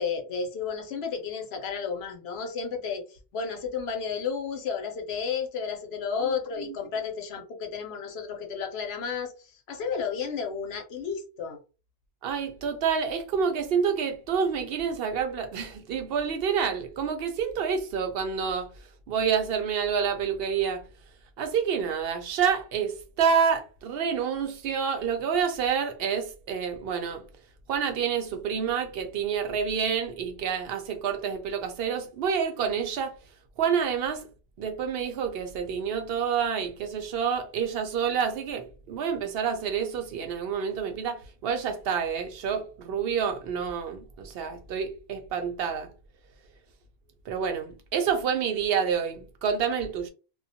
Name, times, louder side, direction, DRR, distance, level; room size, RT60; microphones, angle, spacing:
voice 1, 0.0-11.6, left 6 dB, 75° left, 0.9 m, -32 dB
voice 2, 12.2-18.7 19.1-20.9 21.4-27.2 27.7-33.1 33.6-34.3 34.6-45.9 47.3-50.1, right 7 dB, 70° right, 0.7 m, -28 dB
2.3 x 2.1 x 2.6 m
omnidirectional pair, 1.1 m